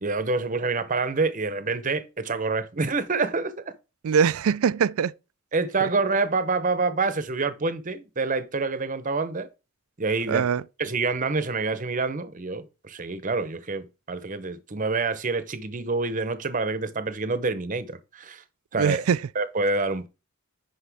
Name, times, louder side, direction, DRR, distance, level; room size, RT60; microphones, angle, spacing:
voice 1, 0.0-3.6 5.5-9.5 10.0-10.4 10.8-18.4 18.7-19.0 19.4-20.1, right 3 dB, 35° right, 0.8 m, -27 dB
voice 2, 4.0-5.1 5.8-5.9 10.3-10.6 18.8-19.3, right 7 dB, 75° right, 0.4 m, -22 dB
10.0 x 5.3 x 3.5 m
head